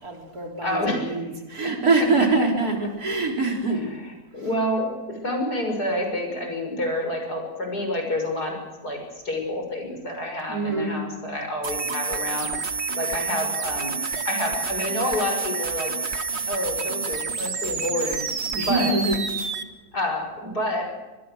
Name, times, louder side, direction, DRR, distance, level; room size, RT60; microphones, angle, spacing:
voice 1, 0.0-3.8 10.5-11.0 13.2-13.4 18.5-19.2, right 3 dB, 70° right, 2 dB, 4.4 m, -24 dB
voice 2, 0.6-1.2 3.7-9.0 9.3-12.6 12.9-13.9 14.3-15.9 16.5-18.2 18.6-18.9 19.9-20.9, left 1 dB, 80° left, 3 dB, 6.8 m, -28 dB
sound 1, 11.6-19.6, right 4 dB, 45° right, 1.6 m, -29 dB
26.0 x 20.5 x 6.5 m, 1.1 s
omnidirectional pair, 1.7 m